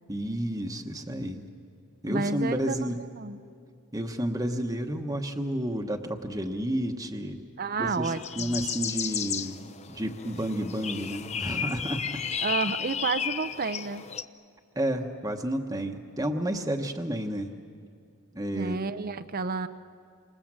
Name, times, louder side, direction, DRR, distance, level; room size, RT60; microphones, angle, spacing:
voice 1, 0.1-1.5 2.0-3.0 3.9-7.4 7.8-9.6 9.9-12.2 14.7-17.5 18.3-18.8, right 1 dB, 15° right, 3 dB, 1.1 m, -31 dB
voice 2, 2.1-3.4 7.6-8.6 12.4-14.0 18.6-19.7, right 4 dB, 40° right, 12 dB, 0.6 m, -31 dB
sound 1, 8.0-14.2, left 7 dB, 30° left, 0.6 m, -33 dB
28.5 x 26.0 x 7.5 m, 2.3 s
head